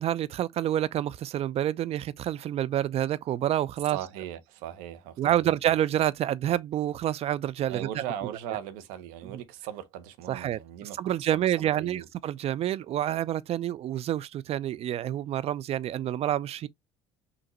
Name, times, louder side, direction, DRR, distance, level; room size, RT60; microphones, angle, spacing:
voice 1, 0.0-4.0 5.2-8.0 9.3-9.4 10.3-16.7, right 11 dB, 45° right, 0.5 m, -28 dB
voice 2, 3.9-5.6 7.7-12.1, right 10 dB, 65° right, 0.9 m, -39 dB
5.6 x 2.5 x 3.0 m
hypercardioid pair, 65°, 15 cm